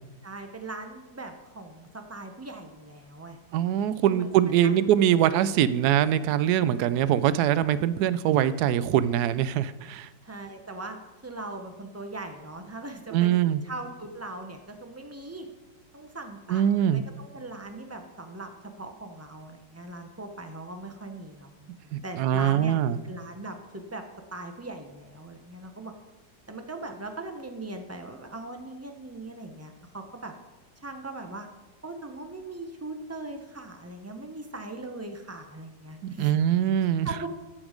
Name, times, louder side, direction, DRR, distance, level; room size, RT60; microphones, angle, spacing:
voice 1, 0.2-3.4 4.0-4.8 5.1-5.3 10.2-11.0 11.2-13.3 13.6-15.5 15.9-18.5 18.8-24.0 24.3-25.9 26.5-30.3 30.8-31.5 31.8-36.4 37.0-37.3, right 2 dB, 10° right, 5 dB, 0.7 m, -40 dB
voice 2, 3.5-10.1 13.1-13.6 16.5-17.0 21.9-23.0 36.0-37.1, right 10 dB, 70° right, 15 dB, 1.0 m, -23 dB
13.0 x 7.2 x 5.1 m, 1.1 s
omnidirectional pair, 2.0 m